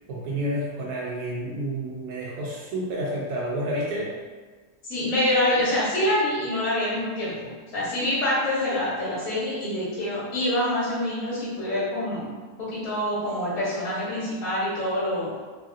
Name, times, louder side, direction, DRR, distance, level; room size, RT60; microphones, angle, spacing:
voice 1, 0.1-4.1, right 1 dB, 85° right, -4 dB, 1.1 m, -30 dB
voice 2, 4.8-12.3 12.7-15.3, left 1 dB, 60° left, -9 dB, 1.2 m, -26 dB
3.1 x 2.5 x 2.4 m, 1.4 s
omnidirectional pair, 1.6 m